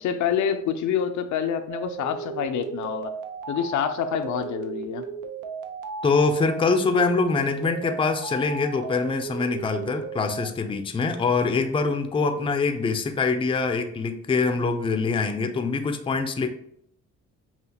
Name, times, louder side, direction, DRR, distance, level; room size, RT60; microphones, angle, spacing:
voice 1, 0.0-3.1 3.5-5.1, left 8 dB, 75° left, 8 dB, 0.5 m, -27 dB
sound 1, 1.7-10.5, right 6 dB, 85° right, 0.6 m, -35 dB
voice 2, 6.0-16.5, left 4 dB, 20° left, 7 dB, 0.4 m, -24 dB
5.6 x 2.4 x 2.8 m, 0.72 s
cardioid pair, 90°, 30 cm